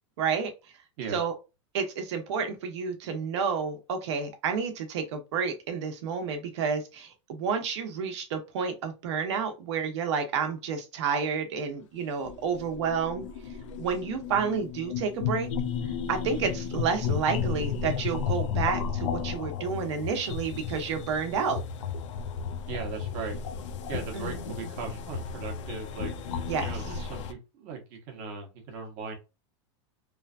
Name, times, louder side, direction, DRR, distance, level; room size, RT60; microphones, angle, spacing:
voice 1, 0.2-0.5 1.1-1.3 1.7-13.3 13.8-15.5 16.1-21.6 24.1-24.5 26.5-26.7, right 6 dB, 65° right, 0.9 m, -30 dB
sound 1, 11.9-27.3, left 6 dB, 80° left, 0.5 m, -33 dB
voice 2, 22.7-23.4 23.9-26.1 26.6-29.2, right 5 dB, 40° right, 0.9 m, -38 dB
3.1 x 2.3 x 2.4 m
supercardioid pair, 170°, 16 cm